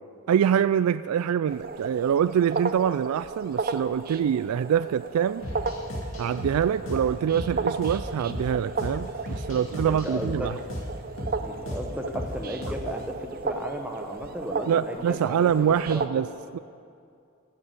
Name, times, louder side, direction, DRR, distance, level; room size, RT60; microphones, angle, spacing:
voice 1, 0.3-5.4 6.2-10.6 14.7-16.3 16.5-16.6, right 8 dB, 85° right, 14 dB, 0.3 m, -25 dB
sound 1, 1.5-16.1, right 4 dB, 40° right, 0.6 m, -34 dB
sound 2, 5.4-13.1, equal, 65° left, 2.4 m, -36 dB
voice 2, 9.5-10.6 11.7-16.0, equal, 5° right, 3 dB, 1.0 m, -35 dB
15.0 x 6.9 x 9.2 m, 2.4 s
head